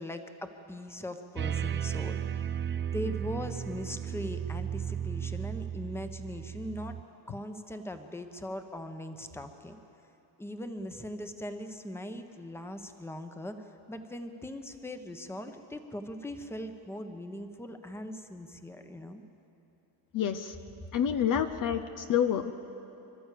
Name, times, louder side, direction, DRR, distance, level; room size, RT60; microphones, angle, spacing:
voice 1, 0.0-2.2 2.9-7.0 7.3-9.8 10.4-19.2 21.5-21.6, left 1 dB, 5° left, 7 dB, 1.1 m, -40 dB
sound 1, 1.4-7.0, right 9 dB, 25° right, 0.5 m, -34 dB
voice 2, 20.1-20.5 20.9-22.5, left 9 dB, 45° left, 8 dB, 0.8 m, -28 dB
26.5 x 12.0 x 8.5 m, 2.9 s
cardioid pair, 120°, 46 cm